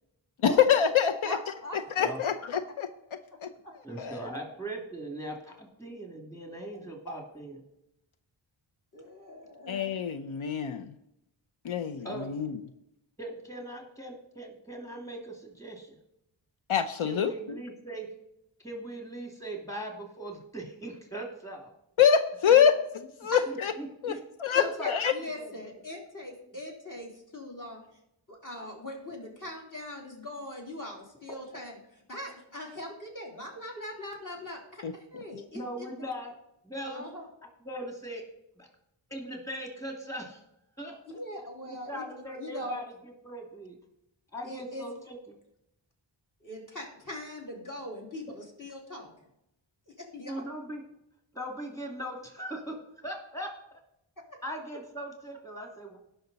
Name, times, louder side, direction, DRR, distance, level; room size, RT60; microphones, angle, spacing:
voice 1, 0.7-1.4 2.0-2.9 3.4-3.5 4.0-4.2 9.7-10.9 11.6-12.5 16.7-17.3 22.0-22.7 23.2-23.7 24.0-24.1 24.4-25.1 34.8-34.9, left 8 dB, 85° left, 9 dB, 0.7 m, -25 dB
voice 2, 1.2-1.8 3.6-3.7 4.1-4.2 7.1-7.2 8.9-9.8 23.3-23.4 24.5-27.8 28.3-31.7 32.1-35.9 36.9-37.3 40.9-42.1 42.4-42.8 44.4-44.9 46.4-49.1 49.9-50.3 54.3-54.4, left 1 dB, 40° left, 0 dB, 3.6 m, -41 dB
voice 3, 3.8-7.6 12.0-12.3 13.2-16.0 17.0-18.1 18.6-21.7 22.5-22.6 23.5-24.2 24.6-25.3 25.6-25.8 35.5-36.3 36.6-37.1 37.6-38.2 38.6-38.7 39.1-40.4 40.8-41.2 41.6-43.8 44.3-45.4 50.3-50.8 51.3-53.8 54.4-56.0, right 1 dB, 5° left, 2 dB, 2.5 m, -40 dB
17.5 x 5.9 x 4.0 m, 0.81 s
wide cardioid pair, 75°, 47 cm